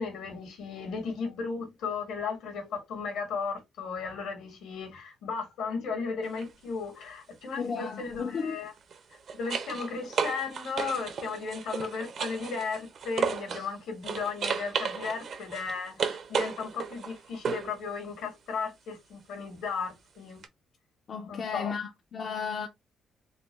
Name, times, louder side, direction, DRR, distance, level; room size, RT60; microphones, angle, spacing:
voice 1, 0.0-8.7 9.3-20.4 21.3-21.7, left 5 dB, 85° left, 1.8 m, -35 dB
sound 1, 6.2-6.5 8.8-13.7 14.0-17.8 20.4-20.5, right 6 dB, 60° right, 0.8 m, -34 dB
voice 2, 7.6-8.6 21.1-22.7, left 5 dB, 50° left, 0.5 m, -34 dB
4.1 x 2.2 x 3.2 m
cardioid pair, 90°, 0 cm